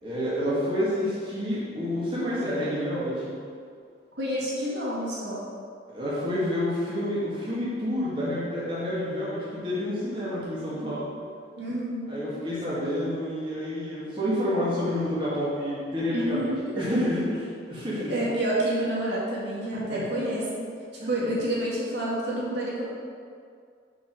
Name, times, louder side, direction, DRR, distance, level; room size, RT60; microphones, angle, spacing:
voice 1, 0.0-3.3 5.9-11.1 12.1-16.4 16.7-18.1 19.7-20.1 21.0-21.3, left 1 dB, 25° right, -9 dB, 2.1 m, -29 dB
voice 2, 4.2-5.4 11.6-12.1 16.1-16.9 18.1-20.6 21.1-22.8, right 1 dB, 65° right, -7 dB, 2.2 m, -28 dB
7.2 x 4.9 x 6.7 m, 2.2 s
head